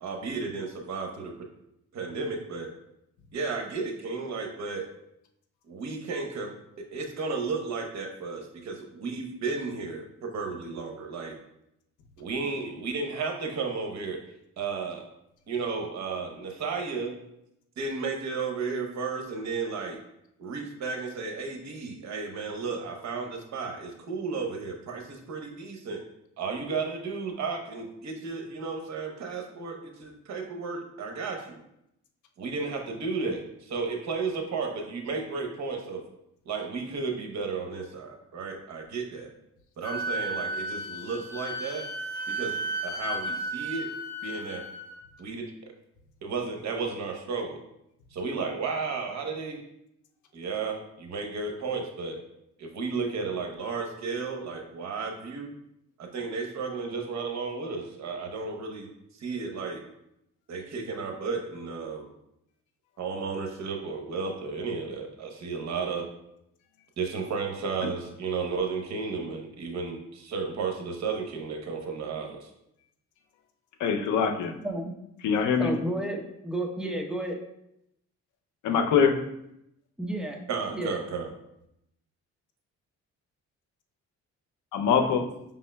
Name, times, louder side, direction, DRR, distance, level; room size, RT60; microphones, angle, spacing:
voice 1, 0.0-1.3 1.9-2.7 3.3-4.8 5.7-6.5 6.9-11.3 12.2-14.2 14.6-15.0 15.5-17.1 17.8-20.0 20.4-26.0 26.4-31.6 32.4-36.0 36.4-39.3 39.8-41.8 42.3-43.9 44.2-44.6 45.2-45.7 46.2-47.6 48.1-49.6 50.3-52.2 52.6-55.5 56.0-58.9 59.1-59.8 60.5-62.1 63.0-66.0 67.0-72.5 80.5-81.3, right 4 dB, 65° right, 3 dB, 0.9 m, -33 dB
Wind instrument woodwind instrument, 39.8-45.0, right 1 dB, 60° left, 1.2 m, -34 dB
voice 2, 73.8-74.5 75.2-75.7 78.6-79.1 84.7-85.3, left 6 dB, 80° left, 5 dB, 0.6 m, -23 dB
voice 3, 75.6-77.4 80.0-80.4 80.7-81.0, right 1 dB, 5° right, 1 dB, 0.7 m, -31 dB
5.4 x 3.6 x 2.2 m, 0.80 s
cardioid pair, 90°, 30 cm